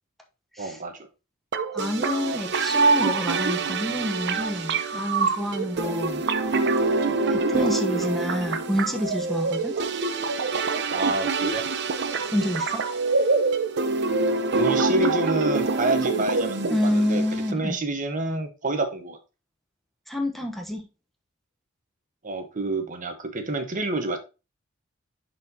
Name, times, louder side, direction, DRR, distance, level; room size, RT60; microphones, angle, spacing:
voice 1, 0.6-1.1 5.8-6.0 7.5-7.7 9.7-9.9 10.9-11.6 14.6-17.2 17.5-19.2 22.2-24.2, right 2 dB, 40° right, 6 dB, 1.1 m, -28 dB
sound 1, 1.5-17.5, right 3 dB, 60° right, 0.8 m, -25 dB
voice 2, 1.7-6.2 7.3-9.7 12.3-12.8 16.7-17.8 20.1-20.8, left 1 dB, ahead, 1 dB, 0.9 m, -28 dB
10.5 x 4.4 x 2.8 m, 0.29 s
head